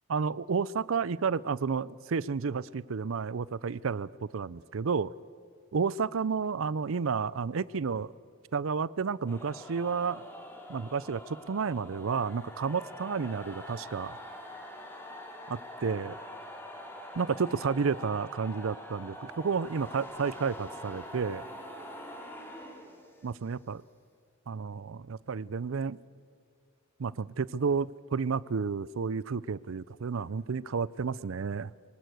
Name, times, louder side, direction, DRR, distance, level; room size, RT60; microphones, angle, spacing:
voice 1, 0.1-5.1 5.7-8.1 8.5-10.2 10.7-14.2 15.5-16.2 17.1-21.4 23.2-23.8 24.5-26.0 27.0-31.7, right 5 dB, 75° right, 20 dB, 0.5 m, -31 dB
sound 1, 9.3-23.4, left 1 dB, 10° left, 2.8 m, -44 dB
23.0 x 20.0 x 7.9 m, 2.2 s
head